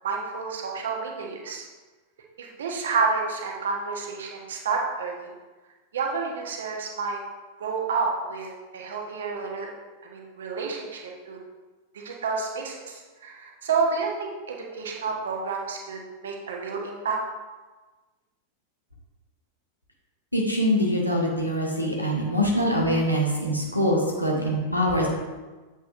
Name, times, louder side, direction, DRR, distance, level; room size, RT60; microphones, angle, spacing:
voice 1, 0.0-1.6 2.4-5.3 5.9-7.2 7.6-9.7 10.0-11.0 11.3-11.4 11.9-17.2, right 4 dB, 65° right, 1 dB, 1.0 m, -29 dB
voice 2, 20.3-25.1, equal, 90° left, -2 dB, 1.1 m, -24 dB
7.8 x 5.5 x 2.5 m, 1.3 s
figure-of-eight pair, 90°, 0 cm